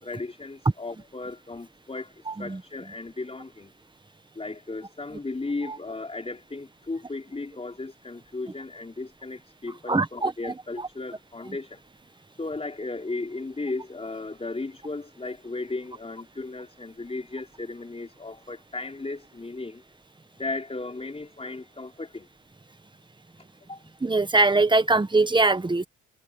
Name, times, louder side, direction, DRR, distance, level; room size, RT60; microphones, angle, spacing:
voice 1, 0.0-2.1 2.4-3.7 4.3-11.8 12.4-19.8 20.4-22.3 23.7-23.8, left 3 dB, 20° left, 4.8 m, -35 dB
voice 2, 9.9-10.3 24.0-25.8, right 3 dB, 15° right, 1.5 m, -21 dB
cardioid pair, 90°, 30 cm